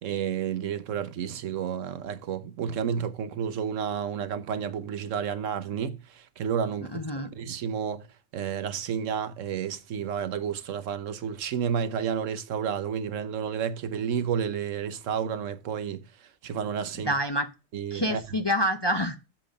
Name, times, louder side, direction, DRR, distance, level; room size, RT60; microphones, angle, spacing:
voice 1, 0.0-7.0 7.3-8.0 8.3-16.0 16.4-17.1 17.7-18.2, right 7 dB, 90° right, 1.2 m, -31 dB
voice 2, 6.9-7.3 17.1-17.5 17.9-19.2, equal, 30° left, 0.5 m, -27 dB
7.6 x 5.1 x 5.1 m
omnidirectional pair, 1.3 m